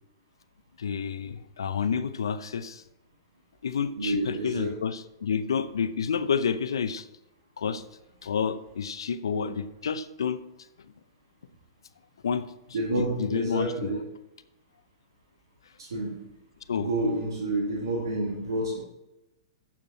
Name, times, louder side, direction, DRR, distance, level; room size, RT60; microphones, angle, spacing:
voice 1, 0.8-2.8 3.6-7.1 7.6-7.8 8.2-10.4 12.2-12.5 13.2-14.0 16.7-16.9, left 6 dB, 85° left, 12 dB, 0.6 m, -29 dB
voice 2, 4.0-4.8 12.7-14.0 15.8-16.3 16.7-18.8, right 1 dB, 85° right, -3 dB, 2.2 m, -29 dB
9.3 x 7.3 x 4.1 m, 0.91 s
hypercardioid pair, 120°, 2 cm